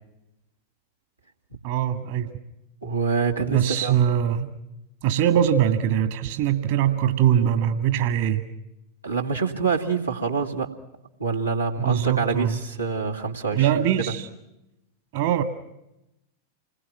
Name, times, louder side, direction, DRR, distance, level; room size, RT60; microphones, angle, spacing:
voice 1, 1.6-2.3 3.5-4.5 5.0-8.4 11.8-12.6 13.5-14.3 15.1-15.4, right 10 dB, 50° right, 8 dB, 1.9 m, -22 dB
voice 2, 2.8-3.9 9.0-10.7 11.2-13.8, right 5 dB, 85° right, -1 dB, 2.3 m, -26 dB
29.0 x 21.5 x 6.0 m, 0.89 s
figure-of-eight pair, 90°, 0 cm